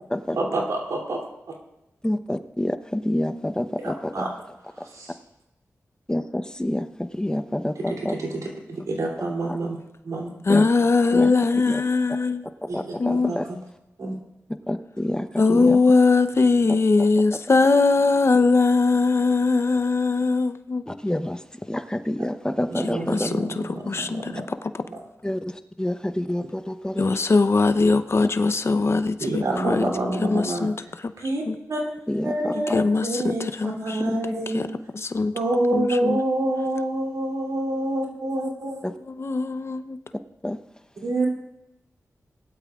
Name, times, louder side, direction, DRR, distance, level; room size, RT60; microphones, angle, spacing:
voice 1, 0.3-1.2 4.1-4.3 4.9-5.1 8.3-8.4 8.7-9.8 10.0-10.3 12.7-12.8 13.1-13.4 14.0-14.2 22.7-24.4 24.8-25.0 29.2-30.9 31.2-31.4 31.7-31.8 32.2-34.7 35.3-38.8 41.0-41.3, right 1 dB, 85° right, 2.9 m, -27 dB
voice 2, 2.0-4.3 4.8-4.9 6.1-8.2 9.5-9.6 10.5-10.6 11.1-11.3 11.7-11.8 12.6-13.5 14.7-15.8 16.7-17.1 20.9-23.3 23.8-24.0 25.2-27.1 28.7-28.8 29.8-29.9 32.1-32.8 38.8-39.0 40.4-40.6, left 1 dB, 15° left, 0.8 m, -28 dB
voice 3, 10.5-12.4 13.0-13.3 15.4-20.8 23.1-23.3 23.9-24.3 27.0-29.8 30.3-30.7 31.5-31.6 32.7-34.2 34.5-34.7 34.9-35.3 35.7-36.2 39.2-40.0, left 3 dB, 50° left, 0.7 m, -20 dB
19.5 x 12.5 x 2.4 m
cardioid pair, 50°, 6 cm